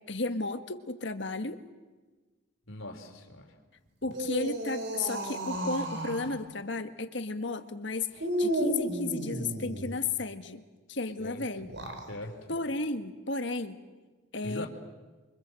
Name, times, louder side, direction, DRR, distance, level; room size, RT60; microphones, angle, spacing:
voice 1, 0.1-1.6 4.0-10.6 10.9-11.7 12.5-13.8 14.3-14.7, left 3 dB, 60° left, 8 dB, 1.7 m, -33 dB
voice 2, 2.7-3.5 11.2-11.4 12.1-12.5 14.4-14.7, left 1 dB, 80° left, 2 dB, 3.6 m, -41 dB
sound 1, 4.0-6.3 8.2-10.0 11.6-12.1, right 1 dB, 60° right, 4.4 m, -33 dB
29.5 x 25.0 x 7.7 m, 1.3 s
head